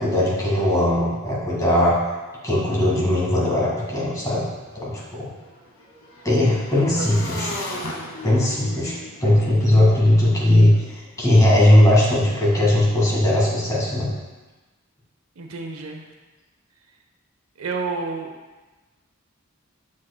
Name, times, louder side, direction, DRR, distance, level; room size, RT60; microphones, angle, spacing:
voice 1, 0.0-2.0 2.4-4.5 4.8-5.3 6.2-7.5 8.2-10.7 11.2-14.1, left 1 dB, 15° left, -6 dB, 1.9 m, -18 dB
Motorcycle / Engine, 3.4-3.5 3.7-10.9, left 1 dB, 70° left, 1.1 m, -38 dB
voice 2, 15.4-16.0 17.6-18.3, right 4 dB, 90° right, 3 dB, 0.8 m, -29 dB
7.4 x 7.3 x 2.2 m, 1.2 s
head